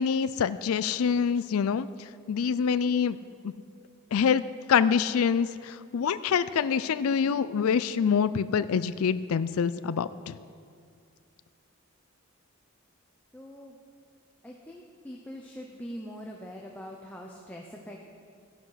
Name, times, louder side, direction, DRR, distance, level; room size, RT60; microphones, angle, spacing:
voice 1, 0.0-3.2 3.4-3.5 4.1-4.4 4.7-10.4, left 6 dB, 85° left, 14 dB, 0.4 m, -26 dB
voice 2, 13.3-13.8 14.4-18.1, equal, 5° left, -1 dB, 0.8 m, -43 dB
14.0 x 11.0 x 5.7 m, 2.2 s
head